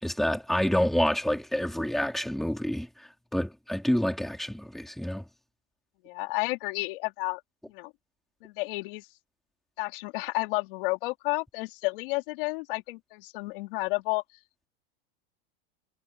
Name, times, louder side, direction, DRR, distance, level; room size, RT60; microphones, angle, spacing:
voice 1, 0.0-5.3, equal, ahead, 3.3 m, -28 dB
voice 2, 6.0-7.4 7.7-7.9 8.4-9.1 9.8-14.2, left 25 dB, 60° left, 3.4 m, -31 dB
supercardioid pair, 160°, 31 cm